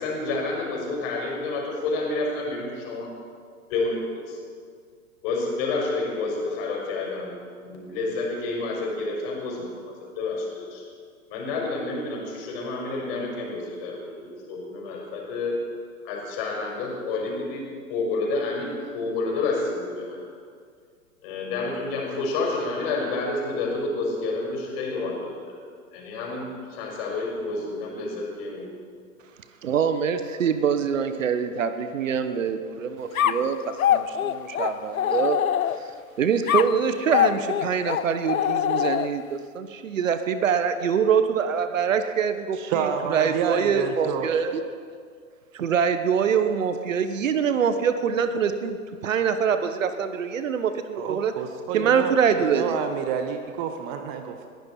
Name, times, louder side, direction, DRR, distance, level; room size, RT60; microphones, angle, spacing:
voice 1, 0.0-3.1 3.7-4.4 5.2-7.4 7.6-10.8 11.3-15.6 16.0-17.6 17.9-20.2 21.2-25.6 25.9-28.8, left 3 dB, 40° left, -1 dB, 5.7 m, -29 dB
voice 2, 29.6-35.4 35.7-35.9 36.2-44.7 45.5-51.3 51.7-52.8, right 7 dB, 60° right, 10 dB, 1.2 m, -24 dB
sound 1, 33.1-36.0 36.5-39.3, left 10 dB, 70° left, 0.6 m, -24 dB
voice 3, 42.5-44.3 51.0-54.5, right 7 dB, 35° right, 6 dB, 1.1 m, -29 dB
21.0 x 15.0 x 4.4 m, 2.1 s
figure-of-eight pair, 105°, 43 cm